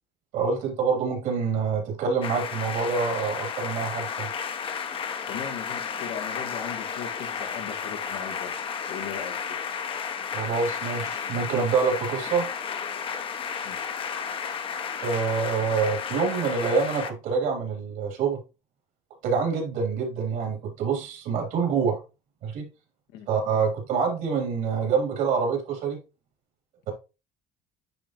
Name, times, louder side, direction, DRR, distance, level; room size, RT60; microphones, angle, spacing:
voice 1, 0.3-4.3 10.3-12.5 15.0-18.4 19.2-22.0 22.4-22.7 23.3-26.0, right 5 dB, 70° right, 3.1 m, -26 dB
sound 1, 2.2-17.1, left 6 dB, 40° left, 0.9 m, -33 dB
voice 2, 5.3-8.5 8.9-9.6 13.6-13.8 23.1-23.3, left 7 dB, 90° left, 1.7 m, -38 dB
9.8 x 3.8 x 3.0 m
cardioid pair, 110°, 14 cm